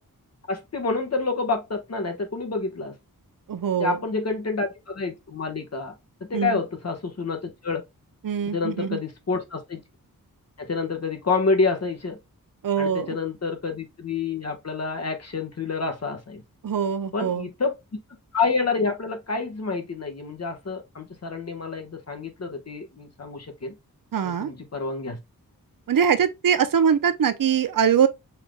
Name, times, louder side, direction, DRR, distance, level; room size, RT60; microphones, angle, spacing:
voice 1, 0.5-2.9 3.8-5.9 6.2-7.8 8.5-9.8 10.6-12.2 12.8-16.4 17.1-17.8 18.3-23.7 24.2-25.2, left 4 dB, 45° left, 1.3 m, -28 dB
voice 2, 3.5-4.0 6.3-6.6 8.2-9.0 12.6-13.2 16.6-17.5 24.1-24.5 25.9-28.1, right 7 dB, 65° right, 0.7 m, -22 dB
5.8 x 3.6 x 2.2 m
wide cardioid pair, 100°, 36 cm